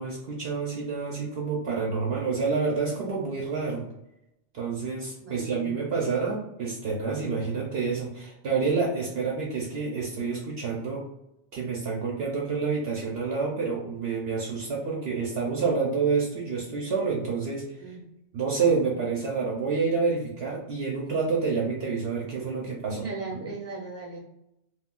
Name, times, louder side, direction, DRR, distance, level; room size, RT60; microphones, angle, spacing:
voice 1, 0.0-3.8 4.5-11.0 11.5-18.0 18.3-23.0 23.3-23.5, right 4 dB, 60° right, -3 dB, 0.8 m, -28 dB
voice 2, 5.2-5.7 17.8-18.0 22.6-24.2, right 3 dB, 15° right, -4 dB, 0.5 m, -38 dB
2.4 x 2.3 x 3.6 m, 0.86 s
omnidirectional pair, 1.3 m